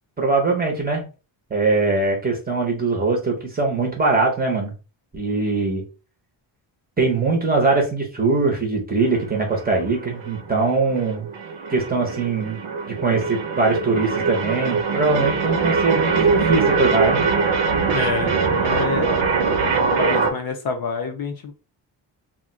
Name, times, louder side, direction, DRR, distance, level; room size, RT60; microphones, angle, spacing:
voice 1, 0.2-1.0 1.5-4.7 5.1-5.8 7.0-11.3 11.7-12.6 12.9-17.2, right 3 dB, 20° right, 0 dB, 0.7 m, -21 dB
sound 1, 9.0-20.3, right 5 dB, 75° right, 0.7 m, -22 dB
voice 2, 17.9-19.3 19.6-21.5, left 4 dB, 50° left, 5 dB, 0.5 m, -28 dB
2.4 x 2.1 x 3.6 m, 0.33 s
wide cardioid pair, 170°, 48 cm